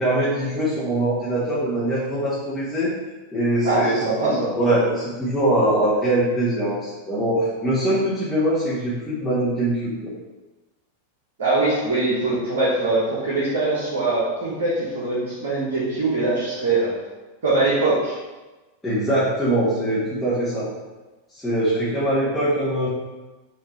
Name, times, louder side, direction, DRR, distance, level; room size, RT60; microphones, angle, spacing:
voice 1, 0.0-2.9 3.3-10.1 18.8-20.7 21.3-22.9, right 1 dB, 5° left, -12 dB, 1.3 m, -22 dB
voice 2, 3.6-4.5 11.4-16.9 17.4-18.1, right 2 dB, 60° right, -7 dB, 1.2 m, -22 dB
5.2 x 2.9 x 3.1 m, 1.2 s
figure-of-eight pair, 90°, 0 cm